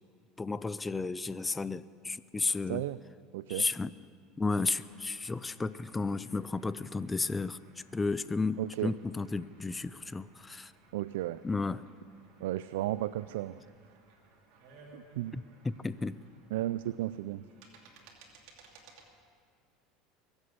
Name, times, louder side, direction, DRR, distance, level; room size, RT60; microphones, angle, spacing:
voice 1, 0.4-2.8 3.5-3.9 4.4-7.6 7.9-10.7 11.4-11.8 15.3-16.2, left 3 dB, 15° left, 16 dB, 0.4 m, -33 dB
voice 2, 2.7-3.0 3.3-3.7 8.6-8.9 10.9-11.4 12.4-13.6 14.9-15.4 16.5-17.4, right 14 dB, 85° right, 15 dB, 0.3 m, -34 dB
sound 1, 4.5-19.1, right 3 dB, 70° right, 2.7 m, -60 dB
21.5 x 8.0 x 8.3 m, 2.2 s
supercardioid pair, 115°, 0 cm